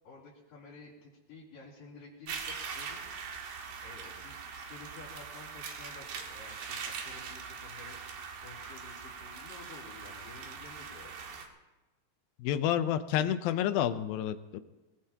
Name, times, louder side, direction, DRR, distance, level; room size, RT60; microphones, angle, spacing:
voice 1, 0.0-3.0 3.8-8.0 8.4-11.4, left 3 dB, 60° left, -10 dB, 5.2 m, -52 dB
sound 1, 2.3-11.5, right 6 dB, 80° right, 3.7 m, -42 dB
voice 2, 12.4-14.6, left 10 dB, 75° left, 10 dB, 2.4 m, -29 dB
25.0 x 18.5 x 2.9 m, 1.1 s
omnidirectional pair, 4.6 m